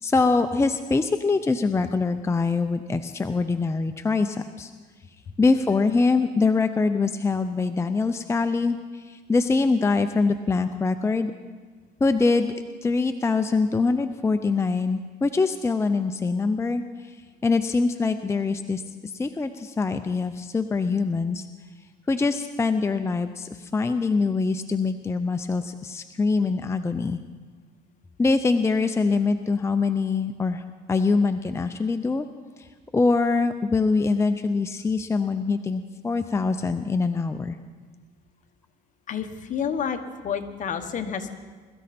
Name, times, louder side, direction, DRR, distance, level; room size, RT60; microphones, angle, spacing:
voice 1, 0.0-4.7 5.4-11.3 12.0-12.5 12.8-17.2 17.4-21.5 22.1-27.2 28.2-30.6 30.9-32.3 32.6-37.6, left 4 dB, 15° left, 8 dB, 0.5 m, -24 dB
voice 2, 39.1-40.0 40.2-41.3, left 7 dB, 50° left, 7 dB, 1.3 m, -29 dB
21.5 x 13.5 x 4.3 m, 1.4 s
cardioid pair, 110°, 17 cm